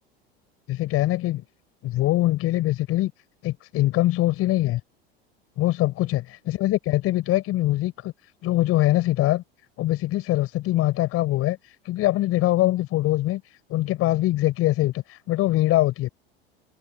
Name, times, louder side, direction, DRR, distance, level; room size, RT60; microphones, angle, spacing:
voice 1, 0.7-1.4 1.8-3.1 3.4-4.8 5.6-8.1 8.4-9.4 9.8-11.6 11.9-13.4 13.7-16.1, left 16 dB, 50° left, 5.4 m, -23 dB
open air
hypercardioid pair, 90°, 29 cm